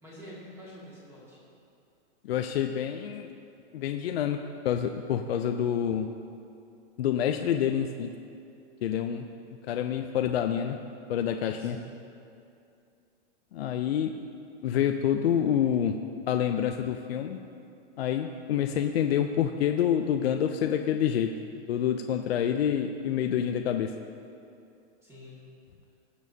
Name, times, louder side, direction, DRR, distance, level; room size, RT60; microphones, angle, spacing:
voice 1, 0.0-1.4 11.6-11.9 25.0-25.4, left 1 dB, 10° right, -8 dB, 2.0 m, -47 dB
voice 2, 2.2-3.3 3.7-6.1 7.0-8.1 8.8-9.3 9.7-10.8 11.1-11.8 13.5-14.1 14.6-15.9 16.3-17.4 18.0-21.3 21.7-23.9, left 9 dB, 60° left, 5 dB, 0.6 m, -27 dB
20.0 x 7.0 x 2.8 m, 2.6 s
hypercardioid pair, 170°, 35 cm